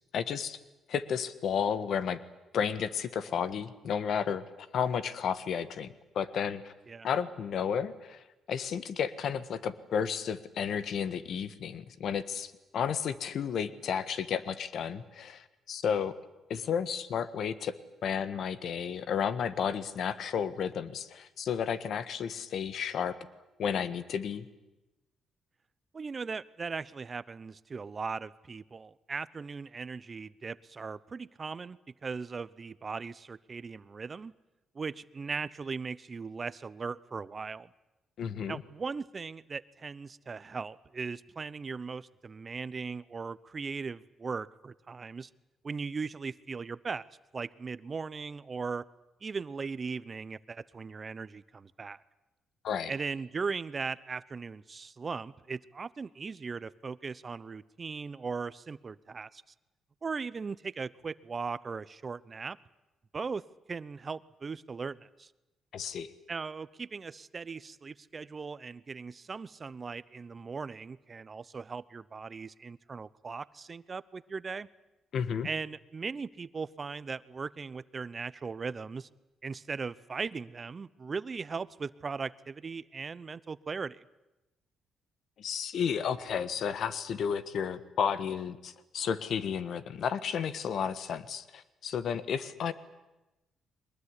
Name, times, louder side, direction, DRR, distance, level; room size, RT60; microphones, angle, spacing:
voice 1, 0.1-0.6 0.9-2.2 2.5-6.7 7.0-8.2 8.5-16.1 16.5-17.7 18.0-23.1 23.6-24.5 38.2-38.6 52.6-52.9 65.7-66.1 75.1-75.5 85.4-92.7, left 7 dB, 65° left, 13 dB, 1.4 m, -32 dB
voice 2, 25.9-34.3 34.7-37.7 38.5-45.3 45.6-47.1 47.3-48.9 49.2-52.0 52.9-59.4 60.0-62.6 63.1-65.3 66.3-74.7 75.4-79.1 79.4-84.0, right 5 dB, 35° right, 17 dB, 0.8 m, -38 dB
22.5 x 20.5 x 9.9 m, 0.99 s
cardioid pair, 90°, 0 cm